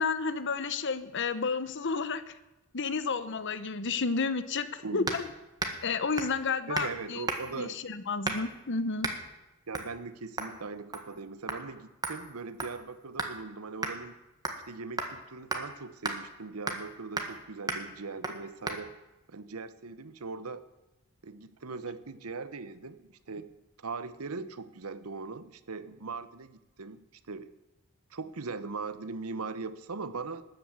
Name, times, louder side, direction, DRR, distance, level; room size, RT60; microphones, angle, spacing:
voice 1, 0.0-2.3 2.7-5.3 5.8-7.2 7.5-9.1, left 4 dB, 55° left, 13 dB, 1.0 m, -31 dB
sound 1, 5.1-5.3 5.6-5.9 6.2-6.4 6.7-6.9 7.3-7.6 8.2-8.6 9.0-9.2 9.7-9.9 10.4-10.6 10.9-11.2 11.5-11.6 12.0-13.4 13.8-14.0 14.5-14.7 15.0-15.1 15.5-15.6 16.0-16.2 16.7-16.9 17.2-17.4 17.7-17.9 18.2-18.4 18.7-18.8, right 2 dB, 20° right, 1.7 m, -34 dB
voice 2, 6.7-7.8 9.7-14.2 14.7-18.9 19.3-20.6 21.2-23.5 23.8-27.5 28.1-30.5, right 4 dB, 90° right, 14 dB, 1.0 m, -40 dB
13.0 x 9.6 x 8.7 m, 0.98 s
head